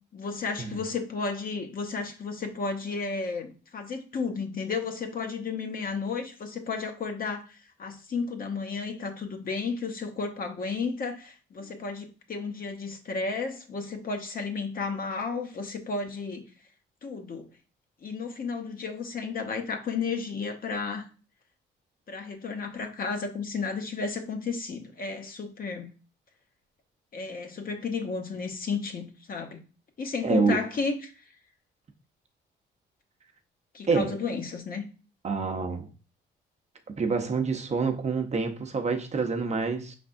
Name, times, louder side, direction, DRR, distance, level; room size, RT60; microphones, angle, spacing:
voice 1, 0.1-16.4 17.0-17.5 18.0-21.1 22.1-25.9 27.1-29.6 30.0-31.1 33.7-34.8, left 4 dB, 45° left, 0.9 m, -33 dB
voice 2, 30.2-30.6 33.9-34.2 35.2-35.9 37.0-39.9, right 4 dB, 35° right, 0.7 m, -27 dB
5.2 x 3.4 x 2.5 m
cardioid pair, 90°, 20 cm